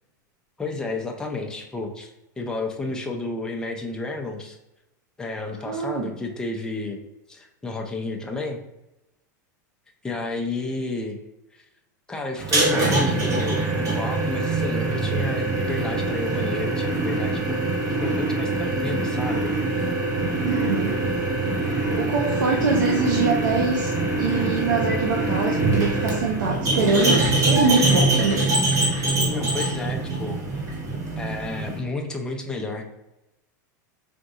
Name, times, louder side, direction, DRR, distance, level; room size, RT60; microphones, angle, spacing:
voice 1, 0.6-2.1 2.4-4.6 5.2-7.0 7.3-8.6 10.0-11.2 11.5-11.6 12.1-17.6 18.0-19.6 29.3-30.4 31.2-32.8, left 3 dB, 5° left, 1 dB, 0.5 m, -31 dB
voice 2, 5.7-6.1 20.4-21.0 22.0-28.5, right 4 dB, 90° right, 1 dB, 0.5 m, -24 dB
sound 1, 12.4-31.8, right 2 dB, 30° right, 1.0 m, -24 dB
3.8 x 2.6 x 2.4 m, 0.92 s
supercardioid pair, 120°, 10 cm